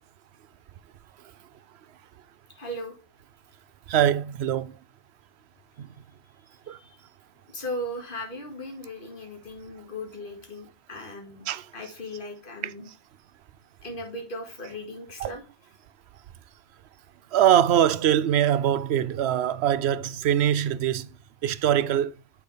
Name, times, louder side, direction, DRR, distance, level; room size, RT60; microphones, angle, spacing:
voice 1, 2.5-3.0 6.6-7.0 7.5-11.4 11.7-12.9 13.8-15.4, left 1 dB, 55° left, 2.2 m, -37 dB
voice 2, 3.9-4.7 5.8-5.9 6.7-6.8 11.5-11.6 15.2-15.3 17.3-21.1 21.4-22.1, right 10 dB, 85° right, 0.9 m, -22 dB
8.5 x 6.1 x 3.3 m
omnidirectional pair, 1.1 m